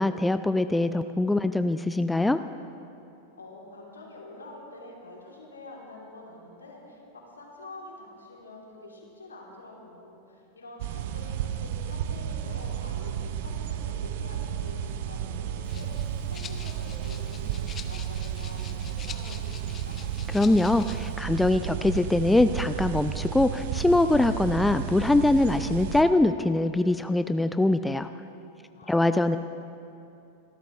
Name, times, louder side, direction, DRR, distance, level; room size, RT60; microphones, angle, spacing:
voice 1, 0.0-2.4 20.3-28.1 28.9-29.4, left 2 dB, 5° left, 10 dB, 0.4 m, -23 dB
voice 2, 3.3-19.6 19.8-20.0 28.8-29.4, left 2 dB, 75° left, -2 dB, 3.2 m, -46 dB
sound 1, 10.8-26.0, right 9 dB, 50° right, 0.7 m, -33 dB
Rattle (instrument), 15.6-21.2, left 7 dB, 25° left, 0.8 m, -46 dB
26.0 x 13.0 x 3.2 m, 2.8 s
figure-of-eight pair, 90°, 0 cm